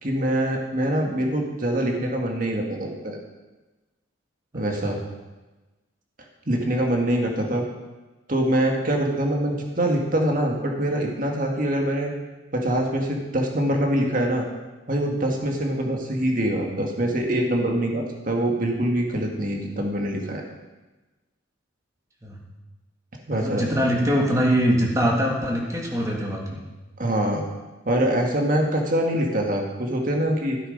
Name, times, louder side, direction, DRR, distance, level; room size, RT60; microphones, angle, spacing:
voice 1, 0.0-3.2 4.5-5.0 6.5-7.6 8.3-12.1 12.5-14.5 14.9-20.4 23.3-23.8 27.0-27.4 27.9-30.6, right 1 dB, 40° right, 1 dB, 1.8 m, -24 dB
voice 2, 4.5-4.9 22.2-22.4 23.3-26.6, equal, 15° right, -2 dB, 1.9 m, -23 dB
13.5 x 8.0 x 5.4 m, 1.2 s
head